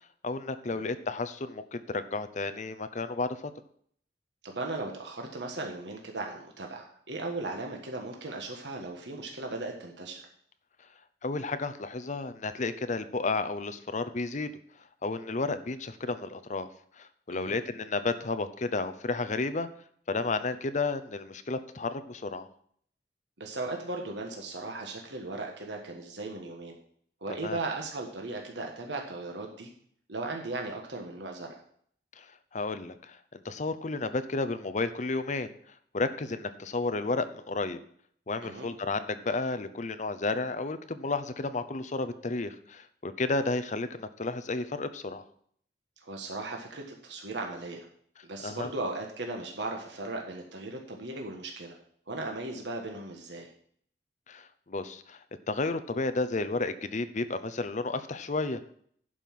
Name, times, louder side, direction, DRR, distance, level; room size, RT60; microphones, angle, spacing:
voice 1, 0.2-3.4 11.2-14.5 15.0-16.7 17.0-19.7 20.1-22.5 27.4-27.6 32.2-32.3 32.5-35.5 35.9-37.8 38.3-45.2 48.4-48.7 54.3-55.2 55.5-58.7, left 3 dB, 45° left, 11 dB, 0.7 m, -32 dB
voice 2, 4.4-10.2 17.3-17.5 23.4-26.8 27.2-29.7 30.1-31.6 38.4-38.7 46.0-47.9 48.2-51.8 52.1-53.5, right 2 dB, 85° right, 2 dB, 1.5 m, -37 dB
11.0 x 5.5 x 5.9 m, 0.62 s
head